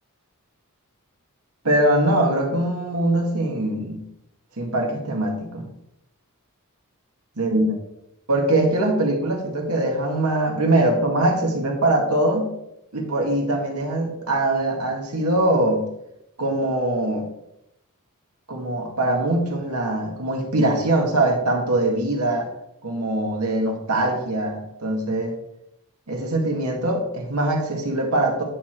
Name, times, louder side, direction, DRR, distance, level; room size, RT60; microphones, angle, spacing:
voice 1, 1.6-4.0 4.6-5.7 7.4-7.7 8.3-12.5 12.9-15.9 16.4-17.3 18.5-22.5 22.8-25.3 26.1-28.4, right 1 dB, 75° right, 1 dB, 1.8 m, -22 dB
9.8 x 4.8 x 4.5 m, 0.82 s
head